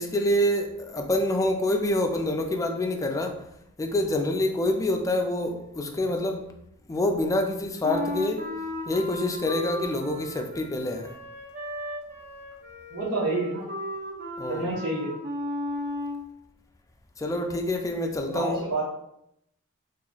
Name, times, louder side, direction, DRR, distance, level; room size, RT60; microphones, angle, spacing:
voice 1, 0.0-3.4 3.8-6.5 6.9-8.5 8.9-11.1 14.4-14.7 17.2-18.6, left 1 dB, 15° left, 3 dB, 0.3 m, -26 dB
Wind instrument woodwind instrument, 7.8-16.3, left 1 dB, 45° right, 0.7 m, -35 dB
voice 2, 12.9-13.6 14.5-15.1 18.2-18.8, right 2 dB, 90° right, -6 dB, 1.4 m, -29 dB
2.9 x 2.4 x 3.8 m, 0.79 s
head